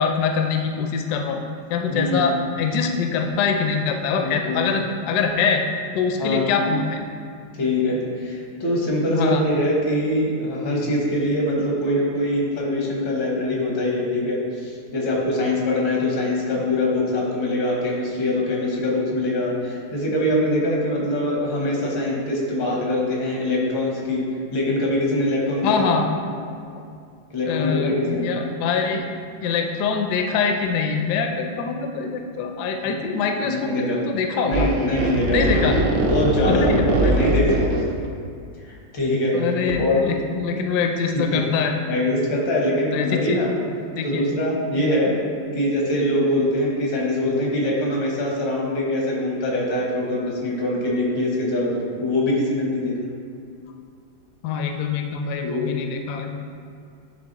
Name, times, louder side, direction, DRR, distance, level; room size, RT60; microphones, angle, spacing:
voice 1, 0.0-1.4 1.7-5.6 5.9-7.0 9.1-9.4 25.6-26.1 27.4-29.0 29.4-34.7 35.3-35.8 36.5-37.1 39.3-41.7 42.9-43.4 44.0-44.2 44.8-44.9 54.4-56.4, left 5 dB, 75° left, 4 dB, 1.0 m, -24 dB
voice 2, 1.9-2.3 4.2-4.7 6.2-6.5 7.5-24.2 24.5-25.9 27.3-28.3 32.8-33.0 33.4-34.0 34.4-35.7 36.0-38.0 38.6-39.4 39.8-40.1 41.3-41.4 41.9-43.5 44.0-45.2 45.5-53.0 55.4-55.7, left 1 dB, 90° left, -2 dB, 2.1 m, -23 dB
sound 1, 34.5-38.1 39.7-39.8, right 2 dB, 75° right, 1.3 m, -22 dB
9.2 x 3.3 x 4.0 m, 2.4 s
omnidirectional pair, 2.0 m